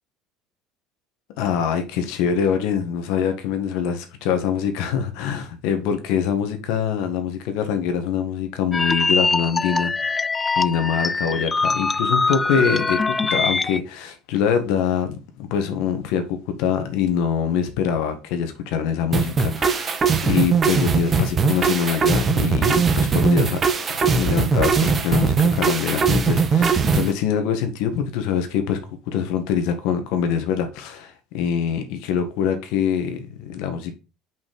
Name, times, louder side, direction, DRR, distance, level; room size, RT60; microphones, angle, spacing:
voice 1, 1.4-9.9 10.5-20.0 20.2-23.6 24.0-28.8 29.1-33.9, left 7 dB, 75° left, 1.8 m, -24 dB
sound 1, 8.7-13.8, left 3 dB, 20° left, 0.3 m, -22 dB
sound 2, 19.1-27.1, right 5 dB, 30° right, 1.3 m, -20 dB
5.8 x 5.4 x 6.5 m
supercardioid pair, 100°, 0 cm